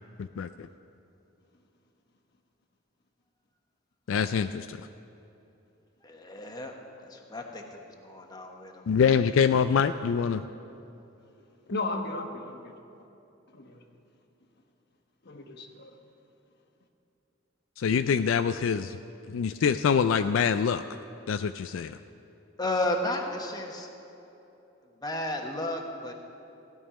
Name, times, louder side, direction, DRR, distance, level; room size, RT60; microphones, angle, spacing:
voice 1, 0.2-0.7 4.1-4.8 8.9-10.5 17.8-19.0 19.3-20.8 21.3-22.0, left 6 dB, 75° left, 10 dB, 0.3 m, -25 dB
voice 2, 6.0-6.7 7.0-8.9 22.6-23.9 25.0-26.1, left 1 dB, 20° left, 2 dB, 1.1 m, -33 dB
voice 3, 11.7-12.7 13.5-13.8 15.2-15.9, left 2 dB, 55° left, 4 dB, 1.2 m, -35 dB
16.0 x 5.4 x 10.0 m, 2.9 s
head